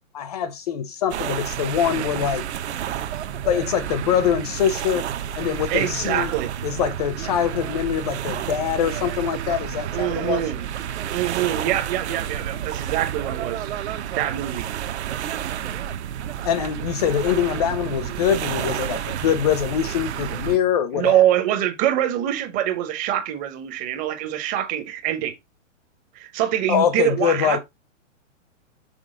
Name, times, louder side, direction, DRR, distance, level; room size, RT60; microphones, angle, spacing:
voice 1, 0.1-2.4 3.5-5.1 5.4-6.3 6.6-10.4 16.4-21.2 26.7-27.6, left 9 dB, 30° left, 0.5 m, -23 dB
sound 1, 1.1-20.6, right 10 dB, 60° right, 1.0 m, -30 dB
voice 2, 5.7-6.5 9.9-10.6 11.1-14.7 20.9-25.3 26.1-27.6, right 12 dB, 20° right, 0.8 m, -24 dB
6.2 x 4.8 x 3.8 m
hypercardioid pair, 150°, 38 cm